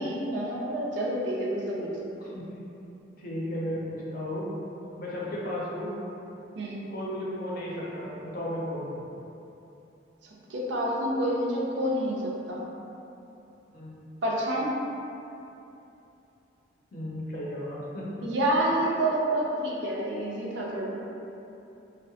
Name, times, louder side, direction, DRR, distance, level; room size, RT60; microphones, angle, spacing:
voice 1, 0.0-2.1 6.6-6.8 10.5-12.6 14.2-14.8 18.2-21.0, right 1 dB, 70° right, -3 dB, 0.4 m, -28 dB
voice 2, 3.2-4.5 5.0-5.9 6.9-9.1 13.7-13.9 16.9-18.1, left 1 dB, 50° left, -6 dB, 0.5 m, -34 dB
2.7 x 2.0 x 2.7 m, 2.9 s
head